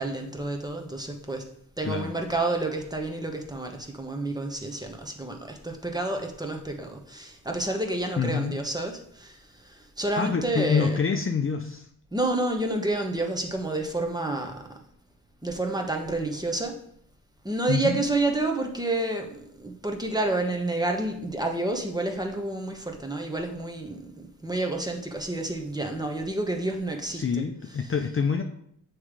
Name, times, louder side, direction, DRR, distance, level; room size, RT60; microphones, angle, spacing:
voice 1, 0.0-1.5 1.8-11.0 12.1-14.8 15.4-16.8 17.4-28.1, right 2 dB, 10° right, 2 dB, 1.1 m, -29 dB
voice 2, 8.2-8.5 10.2-11.9 17.7-18.0 27.1-28.4, left 5 dB, 35° left, 4 dB, 0.6 m, -26 dB
7.0 x 3.3 x 4.9 m, 0.68 s
cardioid pair, 65°, 37 cm